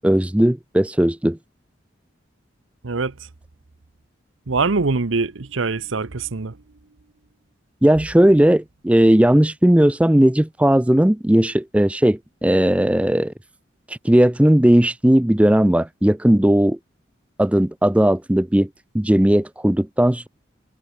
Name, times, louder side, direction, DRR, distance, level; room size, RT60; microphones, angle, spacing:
voice 1, 0.0-1.4 7.8-13.3 13.9-16.8 17.4-18.7 18.9-20.3, right 1 dB, 5° right, 0.5 m, -17 dB
voice 2, 2.8-3.1 4.5-6.6, right 4 dB, 85° right, 0.9 m, -23 dB
head